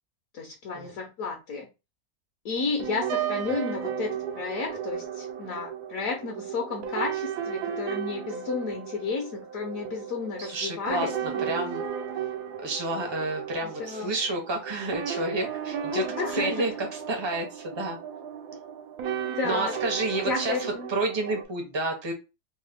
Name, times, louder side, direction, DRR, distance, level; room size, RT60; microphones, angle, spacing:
voice 1, 0.3-1.7 2.4-11.5 13.8-14.1 15.9-16.7 18.5-18.6 19.3-19.8 20.2-20.9, left 4 dB, 70° left, 1 dB, 1.0 m, -32 dB
sound 1, 2.6-21.4, right 8 dB, 85° right, 1.1 m, -34 dB
voice 2, 10.4-11.8 12.6-16.0 16.3-18.0 19.4-22.1, right 2 dB, 40° right, 2 dB, 0.4 m, -30 dB
3.1 x 2.0 x 3.3 m, 0.27 s
omnidirectional pair, 1.6 m